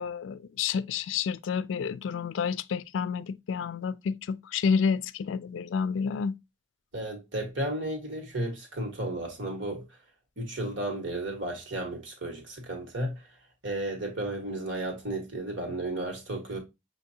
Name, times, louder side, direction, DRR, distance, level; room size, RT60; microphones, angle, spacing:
voice 1, 0.0-6.3, left 6 dB, 85° left, 0.3 m, -29 dB
voice 2, 6.9-9.9 10.4-13.1 13.6-16.6, right 1 dB, 80° right, 1.6 m, -33 dB
6.4 x 2.8 x 2.7 m
head